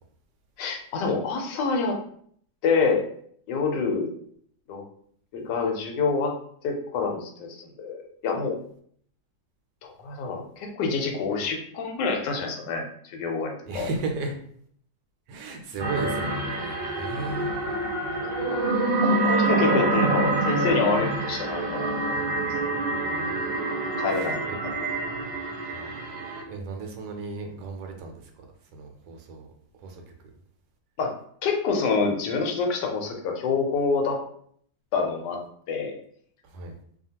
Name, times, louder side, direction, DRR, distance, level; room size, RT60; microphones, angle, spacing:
voice 1, 0.6-2.0 2.6-3.0 3.5-4.1 4.7-4.8 5.3-6.3 6.6-8.6 9.8-13.9 18.2-18.6 19.0-22.2 23.6-24.4 31.0-31.1 31.4-34.2 34.9-35.4 35.7-35.9, left 4 dB, 80° left, 2 dB, 1.2 m, -27 dB
voice 2, 13.6-14.4 15.3-17.5 22.9-23.0 24.1-24.6 25.7-28.2 28.7-29.5 29.8-30.0 36.4-36.7, right 3 dB, 75° right, 3 dB, 1.1 m, -35 dB
sound 1, 15.8-26.4, right 2 dB, 50° right, 0.5 m, -26 dB
2.8 x 2.4 x 2.7 m, 0.62 s
omnidirectional pair, 1.8 m